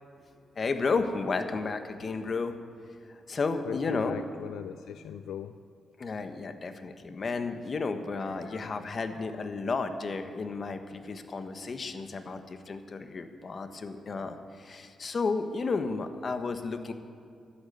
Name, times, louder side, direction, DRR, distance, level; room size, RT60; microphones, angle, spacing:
voice 1, 0.6-2.6 3.1-4.3 6.0-16.9, left 4 dB, 50° left, 8 dB, 1.2 m, -32 dB
voice 2, 3.7-5.5 8.4-9.1, left 9 dB, 80° left, 11 dB, 0.4 m, -40 dB
13.0 x 8.3 x 9.5 m, 2.5 s
supercardioid pair, 60°, 0 cm